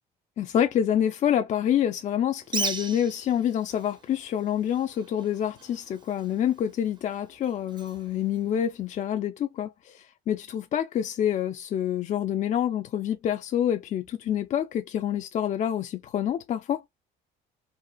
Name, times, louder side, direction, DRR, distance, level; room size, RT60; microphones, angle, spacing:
voice 1, 0.4-16.8, left 10 dB, 45° left, 0.4 m, -27 dB
Bird, 2.4-9.1, right 4 dB, 25° right, 0.6 m, -39 dB
3.9 x 2.4 x 2.2 m
cardioid pair, 110°, 17 cm